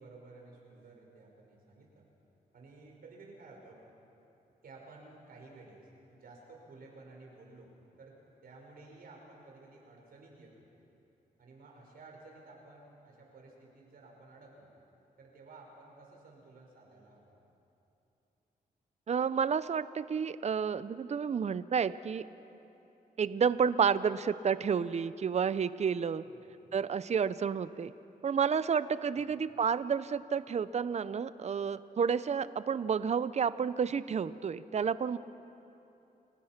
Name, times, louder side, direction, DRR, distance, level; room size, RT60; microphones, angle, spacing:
voice 1, 0.0-2.0 2.5-3.8 4.6-8.2 8.4-10.7 11.4-14.7 15.2-17.4 26.2-26.7 29.1-29.4, right 3 dB, 75° right, 0 dB, 5.2 m, -54 dB
voice 2, 19.1-22.3 23.2-26.2 26.7-27.9 28.2-35.2, right 6 dB, 45° right, 15 dB, 0.6 m, -30 dB
29.5 x 15.5 x 5.9 m, 2.9 s
cardioid pair, 75°, 16 cm